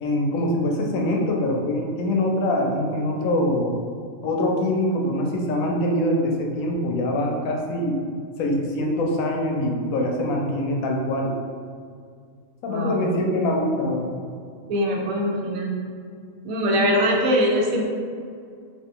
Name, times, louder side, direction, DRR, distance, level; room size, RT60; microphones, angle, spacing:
voice 1, 0.0-3.7 4.2-7.9 8.4-11.3 12.6-14.1, left 1 dB, 85° left, 0 dB, 1.0 m, -24 dB
voice 2, 12.7-13.0 14.7-15.8 16.4-17.8, equal, 90° right, 0 dB, 1.1 m, -22 dB
3.1 x 2.4 x 3.6 m, 2.2 s
omnidirectional pair, 1.4 m